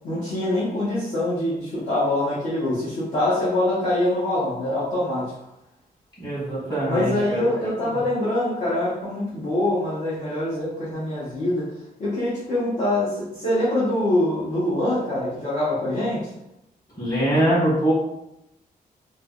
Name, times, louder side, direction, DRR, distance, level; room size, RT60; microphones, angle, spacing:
voice 1, 0.0-5.4 6.9-11.7 12.0-16.3, left 1 dB, 50° left, -11 dB, 0.9 m, -24 dB
voice 2, 6.2-7.4 7.9-8.0 17.0-17.9, right 1 dB, 25° left, -8 dB, 1.5 m, -23 dB
3.2 x 2.1 x 2.3 m, 0.84 s
wide cardioid pair, 180°, 16 cm